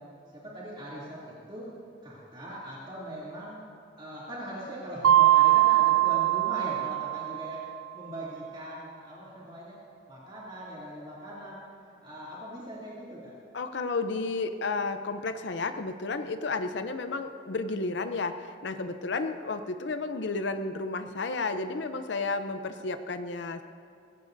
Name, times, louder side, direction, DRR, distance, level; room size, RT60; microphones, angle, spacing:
voice 1, 0.3-1.7 2.0-3.6 4.0-7.6 7.9-9.8 10.1-13.3, equal, 30° right, -8 dB, 2.8 m, -40 dB
Mallet percussion, 5.0-7.7, right 14 dB, 90° right, 0.4 m, -22 dB
voice 2, 13.5-23.6, left 3 dB, 65° left, 9 dB, 0.6 m, -32 dB
24.0 x 16.0 x 2.7 m, 2.5 s
head